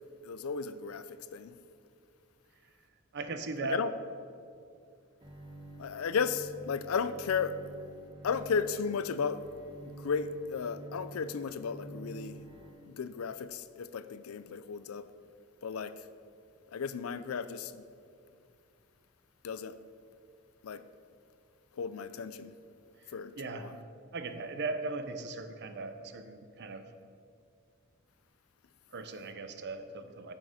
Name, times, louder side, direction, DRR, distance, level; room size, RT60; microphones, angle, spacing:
voice 1, 0.2-1.6 3.7-3.9 5.8-7.6 8.2-9.4 9.8-12.5 12.9-15.1 15.6-15.9 16.7-17.8 19.4-19.8 20.6-20.8 21.8-22.6 23.1-23.8, left 6 dB, 90° left, 0.4 m, -34 dB
voice 2, 3.1-3.8 23.4-23.8 24.1-26.9 28.9-30.3, right 3 dB, 55° right, 0.7 m, -38 dB
Bowed string instrument, 5.2-12.7, right 2 dB, 25° right, 1.0 m, -48 dB
8.6 x 7.4 x 5.1 m
head